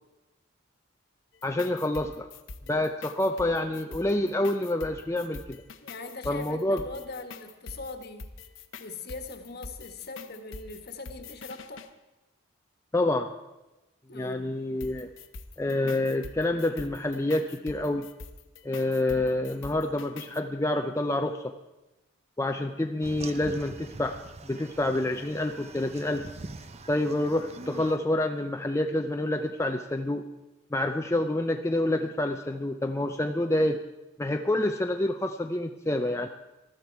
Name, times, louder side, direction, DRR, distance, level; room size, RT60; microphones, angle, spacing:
sound 1, 1.3-11.9 14.8-20.4, left 3 dB, 70° left, 0.9 m, -45 dB
voice 1, 1.4-2.3 2.7-5.6 6.3-6.8 12.9-13.3 14.1-15.1 15.6-18.1 18.6-21.5 22.4-24.2 24.4-26.3 26.9-30.3 30.7-33.8 34.2-36.3, left 1 dB, 15° left, 4 dB, 0.5 m, -27 dB
voice 2, 5.8-8.3 8.8-11.9 14.1-14.5, left 3 dB, 50° left, 7 dB, 1.5 m, -41 dB
sound 2, 23.0-28.0, right 3 dB, 30° right, 0.7 m, -44 dB
19.5 x 13.0 x 4.7 m, 1.0 s
head